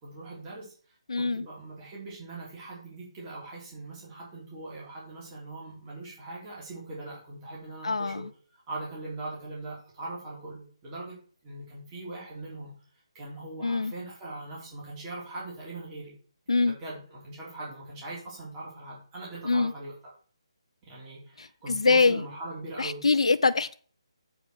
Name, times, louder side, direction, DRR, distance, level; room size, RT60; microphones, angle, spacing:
voice 1, 0.0-0.7 1.1-8.2 8.5-11.2 11.4-12.7 13.1-16.1 16.6-19.9 20.8-23.0, right 2 dB, 20° right, 3.4 m, -41 dB
voice 2, 1.1-1.5 7.8-8.3 13.6-13.9 16.5-16.8 19.4-19.7 21.4-22.2 22.8-23.7, left 4 dB, 85° left, 0.5 m, -24 dB
8.0 x 4.8 x 6.4 m
hypercardioid pair, 160°, 3 cm